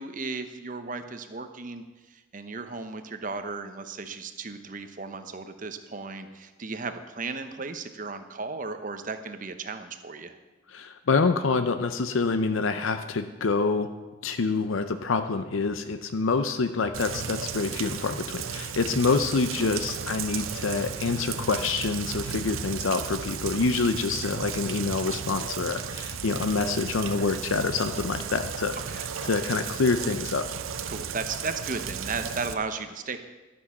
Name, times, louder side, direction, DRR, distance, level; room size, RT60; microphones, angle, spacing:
voice 1, 0.0-10.4 28.9-29.3 30.9-33.2, right 4 dB, 40° right, 8 dB, 0.8 m, -35 dB
voice 2, 10.7-13.9 14.2-28.8 29.3-30.5, left 4 dB, 80° left, 9 dB, 0.6 m, -26 dB
Rain, 16.9-32.5, right 7 dB, 90° right, 0.7 m, -34 dB
12.5 x 6.3 x 7.1 m, 1.2 s
head